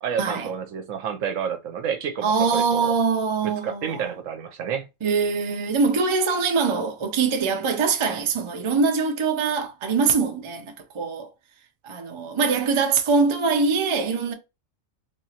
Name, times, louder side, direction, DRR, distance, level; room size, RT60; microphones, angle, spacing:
voice 1, 0.0-2.9 3.4-4.9, right 7 dB, 75° right, 1.0 m, -29 dB
voice 2, 2.2-4.1 5.0-11.3 11.8-14.3, right 5 dB, 45° right, 0.4 m, -23 dB
3.5 x 2.9 x 2.8 m
omnidirectional pair, 1.4 m